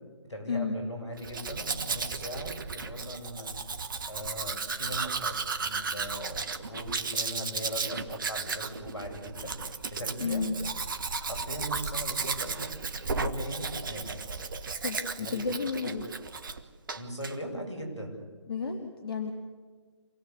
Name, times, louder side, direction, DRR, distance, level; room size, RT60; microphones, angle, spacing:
voice 1, 0.3-3.5 4.1-9.6 9.9-10.4 11.2-12.8 13.1-14.2 15.2-15.5 15.8-15.9 16.9-18.2, equal, 75° left, 2 dB, 7.9 m, -39 dB
Domestic sounds home sounds, 1.2-16.6 16.9-17.3, right 4 dB, 45° right, 1.3 m, -34 dB
voice 2, 10.2-10.6 14.8-16.1 18.5-19.3, left 5 dB, 55° left, 4 dB, 2.1 m, -32 dB
27.0 x 18.0 x 8.2 m, 1.4 s
figure-of-eight pair, 145°, 15 cm